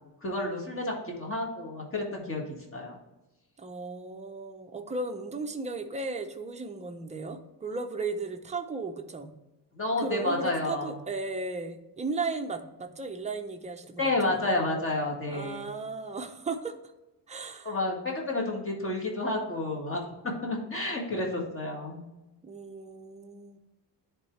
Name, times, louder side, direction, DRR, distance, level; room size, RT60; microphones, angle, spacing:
voice 1, 0.2-3.0 9.7-10.9 14.0-15.7 17.6-20.0 20.4-22.0, left 2 dB, 30° left, -1 dB, 1.8 m, -30 dB
voice 2, 3.6-9.3 10.0-14.4 15.3-16.7 17.3-17.7 22.4-23.6, right 3 dB, 15° right, 5 dB, 0.6 m, -35 dB
10.5 x 3.7 x 3.2 m, 1.0 s
cardioid pair, 150°, 41 cm